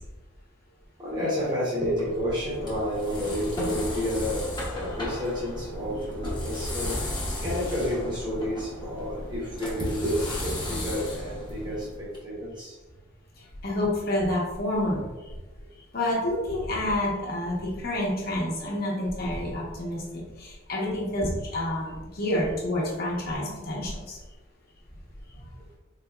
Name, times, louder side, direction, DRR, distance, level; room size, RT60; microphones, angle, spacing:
voice 1, 1.0-12.7, equal, 25° right, -7 dB, 1.0 m, -30 dB
sound 1, 1.8-12.2, left 1 dB, 25° left, 0.8 m, -35 dB
voice 2, 13.4-15.3 15.9-24.2 25.3-25.5, left 1 dB, 50° left, -3 dB, 1.0 m, -29 dB
4.0 x 2.8 x 2.3 m, 1.1 s
head